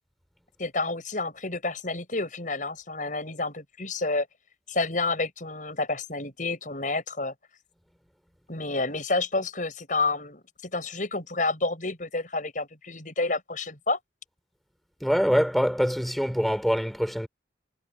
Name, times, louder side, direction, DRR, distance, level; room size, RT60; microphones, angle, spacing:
voice 1, 0.6-4.3 4.7-7.3 8.5-14.0, left 3 dB, 45° left, 7.1 m, -29 dB
voice 2, 15.0-17.3, equal, ahead, 5.5 m, -24 dB
head